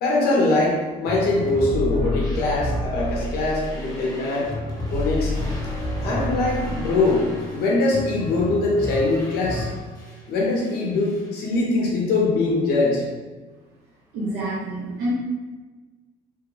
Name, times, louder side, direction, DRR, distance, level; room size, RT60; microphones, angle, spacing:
voice 1, 0.0-4.5 4.9-5.3 6.0-7.3 7.5-9.7 10.3-13.0, left 2 dB, 70° left, -3 dB, 1.0 m, -22 dB
sound 1, 1.1-10.2 10.5-11.3, left 1 dB, 25° left, 1.2 m, -30 dB
voice 2, 14.1-15.1, right 1 dB, 75° right, -10 dB, 1.2 m, -27 dB
3.2 x 2.3 x 3.3 m, 1.3 s
cardioid pair, 110°, 17 cm